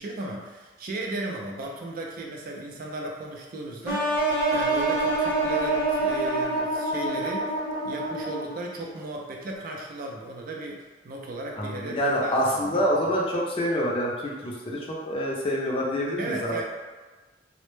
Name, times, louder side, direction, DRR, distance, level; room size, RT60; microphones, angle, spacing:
voice 1, 0.0-4.1 4.5-7.5 7.8-13.1 16.2-16.6, right 2 dB, 55° right, 0 dB, 0.4 m, -36 dB
sound 1, 3.9-8.7, right 2 dB, 10° right, 0.7 m, -26 dB
voice 2, 11.6-16.6, equal, 30° left, -4 dB, 0.4 m, -26 dB
2.0 x 2.0 x 3.0 m, 1.3 s
head